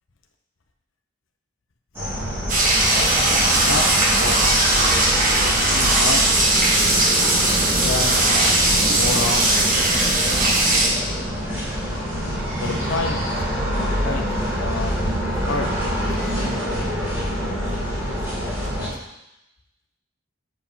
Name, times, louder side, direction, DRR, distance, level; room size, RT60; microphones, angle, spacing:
sound 1, 1.9-18.9, equal, 10° right, 2.2 m, -26 dB
sound 2, 2.5-10.9, right 2 dB, 40° right, 1.4 m, -19 dB
voice 1, 4.1-4.9 5.2-6.5 7.7-9.8 12.6-14.9 15.5-16.0 16.4-19.0, left 3 dB, 65° left, 3 dB, 0.8 m, -31 dB
6.9 x 5.0 x 5.5 m, 0.88 s
head